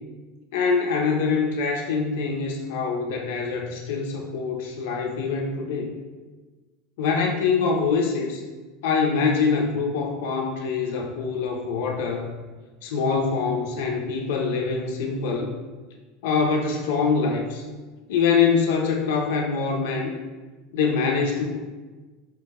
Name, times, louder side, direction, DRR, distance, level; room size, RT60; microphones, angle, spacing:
voice 1, 0.5-5.9 7.0-8.4 8.8-12.3 12.8-15.5 16.2-17.6 18.1-20.1 20.7-21.6, left 5 dB, 65° left, 1 dB, 0.4 m, -24 dB
4.5 x 2.1 x 3.4 m, 1.3 s
supercardioid pair, 180°, 0 cm